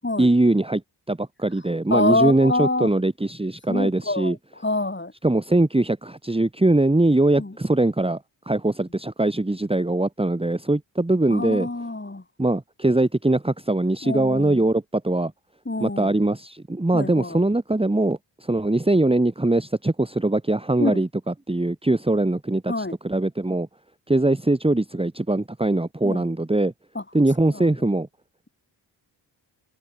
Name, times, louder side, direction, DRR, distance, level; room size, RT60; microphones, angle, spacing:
voice 1, 0.2-0.8 1.1-4.4 5.2-8.2 8.4-11.7 12.4-15.3 15.8-23.7 24.1-26.7 27.1-28.1, right 2 dB, 10° right, 1.9 m, -22 dB
voice 2, 1.9-2.9 3.7-4.4 4.6-5.1 7.3-7.5 11.3-12.2 14.0-14.6 15.6-16.1 16.9-17.4 20.8-21.0 22.7-23.0 26.0-26.3 26.9-27.0 27.5-27.7, left 2 dB, 25° left, 6.7 m, -26 dB
supercardioid pair, 45°, 48 cm